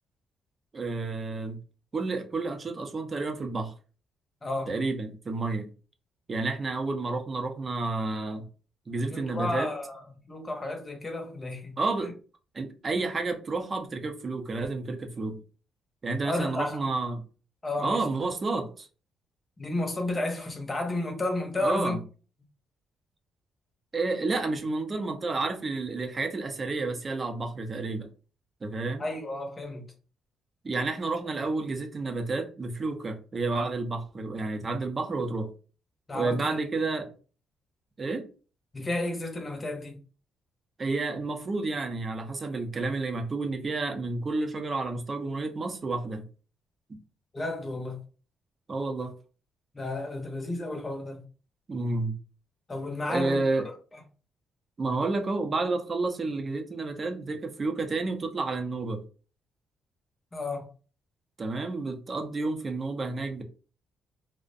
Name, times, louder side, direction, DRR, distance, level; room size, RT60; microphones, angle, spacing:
voice 1, 0.7-1.6 1.9-3.7 4.7-5.7 6.3-8.5 8.9-9.7 11.8-12.2 12.5-15.4 16.0-17.2 17.8-18.9 21.6-22.0 23.9-28.1 28.6-29.1 30.6-35.5 36.1-37.1 38.0-38.3 40.8-46.2 48.7-49.1 51.7-52.2 53.1-53.7 54.8-59.0 61.4-63.4, right 3 dB, 35° right, 0.5 m, -30 dB
voice 2, 4.4-4.7 9.1-11.7 16.3-16.8 17.6-18.0 19.6-22.0 29.0-29.9 36.1-36.5 38.7-40.0 47.3-48.0 49.7-51.2 52.7-53.7 60.3-60.7, left 2 dB, 25° left, 0.7 m, -32 dB
2.4 x 2.1 x 2.5 m
cardioid pair, 90°, 0 cm